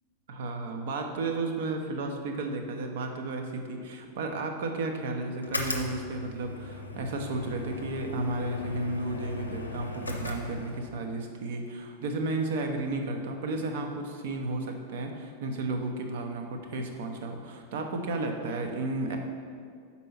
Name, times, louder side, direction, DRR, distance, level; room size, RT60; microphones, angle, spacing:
voice 1, 0.3-19.2, right 2 dB, 55° right, 4 dB, 0.7 m, -33 dB
sound 1, 5.4-11.0, left 1 dB, 80° left, 0.6 m, -37 dB
5.3 x 4.1 x 5.8 m, 2.2 s
figure-of-eight pair, 90°, 0 cm